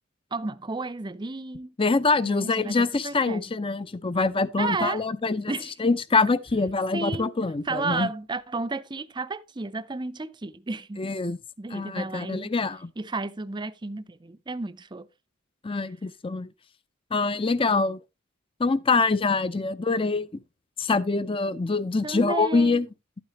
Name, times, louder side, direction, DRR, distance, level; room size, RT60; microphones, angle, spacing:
voice 1, 0.3-1.7 2.2-3.5 4.6-5.0 5.5-5.7 6.9-7.3 7.7-11.0 11.6-12.5 13.0-15.1 15.7-15.8 22.0-22.8, right 3 dB, 20° right, 0.5 m, -32 dB
voice 2, 1.8-8.1 11.0-11.4 11.7-12.9 15.6-16.5 17.1-18.0 18.6-20.3 20.8-22.9, left 3 dB, 25° left, 0.5 m, -25 dB
11.5 x 8.9 x 3.0 m
head